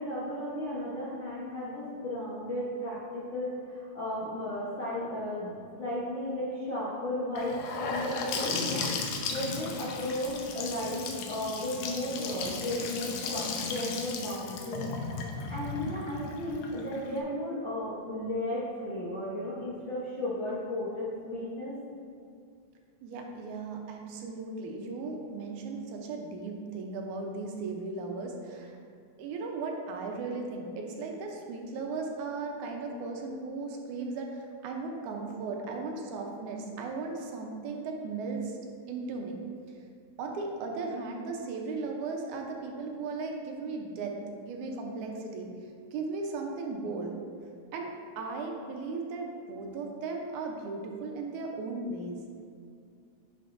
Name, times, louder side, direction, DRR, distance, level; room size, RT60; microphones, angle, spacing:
voice 1, 0.0-8.9 9.3-13.4 13.7-15.0 15.5-21.8, left 1 dB, 65° left, -8 dB, 1.2 m, -34 dB
Gurgling / Sink (filling or washing) / Bathtub (filling or washing), 7.4-17.2, left 4 dB, 80° left, 2.1 m, -35 dB
voice 2, 23.0-28.8 29.2-38.6 38.9-39.4 40.2-44.1 44.4-45.5 45.9-47.1 47.7-52.2, right 3 dB, 85° right, 1 dB, 2.2 m, -36 dB
10.5 x 4.9 x 2.6 m, 2.3 s
omnidirectional pair, 3.4 m